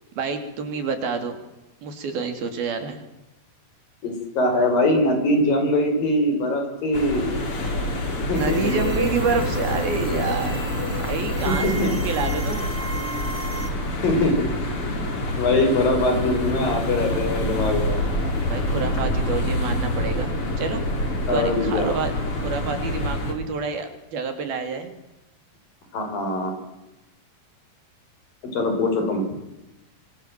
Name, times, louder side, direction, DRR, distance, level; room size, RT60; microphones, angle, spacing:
voice 1, 0.2-1.4 1.8-3.0 8.3-10.6 10.9-12.7 18.5-20.8 21.3-22.1 22.4-24.9, right 5 dB, 65° right, 7 dB, 4.9 m, -28 dB
voice 2, 4.0-7.5 8.3-8.9 11.5-11.9 13.7-14.5 14.8-15.1 15.4-18.0 21.3-21.9 25.9-26.5 28.5-29.2, left 1 dB, 60° left, 5 dB, 7.5 m, -22 dB
sound 1, 6.9-23.3, left 1 dB, 35° left, 4.8 m, -27 dB
sound 2, 8.3-13.7, right 1 dB, 20° right, 3.1 m, -31 dB
26.0 x 25.0 x 7.8 m, 0.96 s
omnidirectional pair, 4.6 m